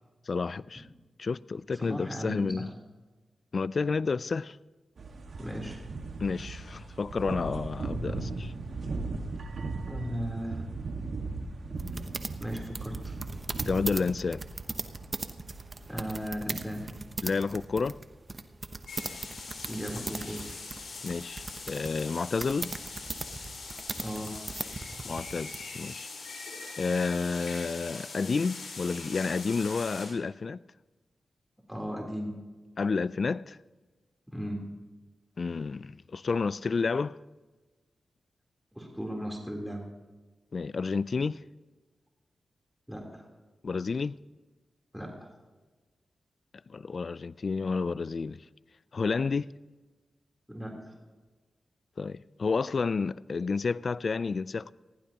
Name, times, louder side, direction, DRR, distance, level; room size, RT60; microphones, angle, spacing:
voice 1, 0.3-0.9 1.2-2.7 3.5-4.6 6.2-8.5 13.6-14.5 17.2-18.0 21.0-22.7 25.0-26.1 26.8-30.6 32.8-33.6 35.4-37.2 40.5-41.4 43.6-44.2 46.7-48.4 48.9-49.5 52.0-54.7, left 4 dB, 55° left, 0.3 m, -30 dB
voice 2, 1.8-2.7 5.4-5.8 9.8-10.6 12.2-13.1 15.9-16.8 19.7-20.5 24.0-24.4 31.7-32.3 34.3-34.7 38.8-39.8 42.9-43.2 44.9-45.3 50.5-50.9, equal, 5° right, 3.6 m, -36 dB
sound 1, 5.0-16.3 16.6-17.5, right 3 dB, 70° right, 1.7 m, -38 dB
sound 2, 11.8-25.6, right 3 dB, 40° right, 1.0 m, -39 dB
sound 3, 18.9-30.1, left 3 dB, 80° left, 4.3 m, -42 dB
20.0 x 15.5 x 2.9 m
cardioid pair, 50°, 0 cm